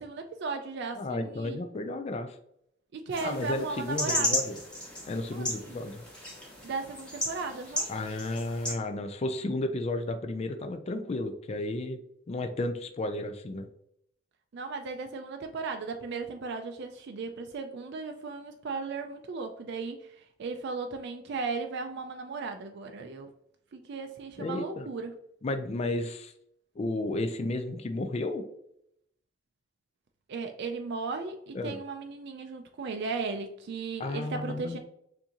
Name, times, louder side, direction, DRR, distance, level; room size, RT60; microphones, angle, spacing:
voice 1, 0.0-1.6 2.9-4.3 5.3-5.8 6.6-7.9 14.5-23.3 23.7-25.1 30.3-34.8, right 4 dB, 60° right, 5 dB, 0.4 m, -36 dB
voice 2, 1.0-2.4 3.2-4.6 5.1-6.0 7.9-12.0 12.3-13.7 24.4-24.9 25.4-26.3 26.8-28.4 31.5-31.8 34.0-34.8, left 2 dB, 35° left, 7 dB, 0.4 m, -33 dB
sound 1, 3.1-8.7, left 1 dB, 5° left, 1.5 m, -34 dB
7.0 x 2.6 x 2.8 m, 0.74 s
head